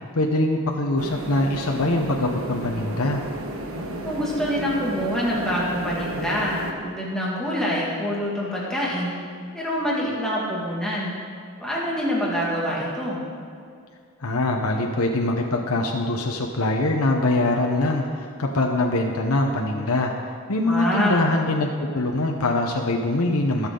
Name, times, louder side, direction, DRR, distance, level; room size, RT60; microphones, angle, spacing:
voice 1, 0.2-3.2 14.2-23.7, left 2 dB, 85° left, 1 dB, 0.9 m, -23 dB
sound 1, 1.0-6.7, right 1 dB, 65° right, 1.2 m, -33 dB
voice 2, 3.9-9.1 9.5-11.1 11.6-13.2 20.6-21.2, equal, 5° left, -6 dB, 2.2 m, -26 dB
21.5 x 7.3 x 3.9 m, 2.3 s
head